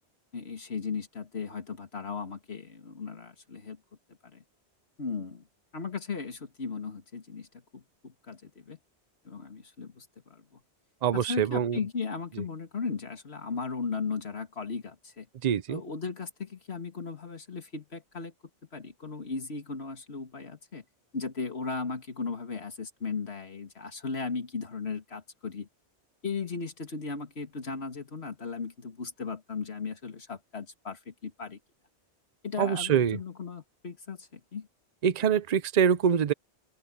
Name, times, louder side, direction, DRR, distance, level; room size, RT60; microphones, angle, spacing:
voice 1, 0.3-3.8 4.2-4.4 5.0-5.4 5.7-7.5 7.7-8.8 9.2-10.6 11.1-15.3 15.7-18.3 18.7-20.8 21.1-25.7 26.2-31.6 32.4-34.7, left 4 dB, 70° left, 2.4 m, -36 dB
voice 2, 11.0-11.8 12.4-12.5 15.4-15.8 32.6-33.2 35.0-36.3, right 8 dB, 45° right, 0.7 m, -25 dB
open air
omnidirectional pair, 1.1 m